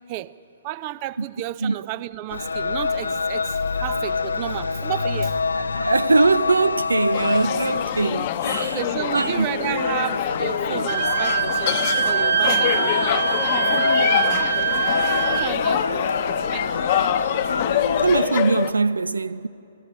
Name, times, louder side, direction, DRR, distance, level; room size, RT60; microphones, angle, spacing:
voice 1, 0.6-5.4 8.6-14.6 15.3-16.1 16.5-16.8, right 15 dB, 35° right, 0.6 m, -32 dB
sound 1, 2.3-18.2, left 4 dB, 70° left, 0.6 m, -26 dB
voice 2, 5.6-8.8 9.1-9.5 18.0-19.5, right 3 dB, 75° right, 0.5 m, -21 dB
sound 2, 7.1-18.7, left 12 dB, 35° left, 0.9 m, -26 dB
Wind instrument woodwind instrument, 10.9-15.5, right 8 dB, 55° right, 1.7 m, -23 dB
28.0 x 20.0 x 6.3 m
figure-of-eight pair, 120°, 0 cm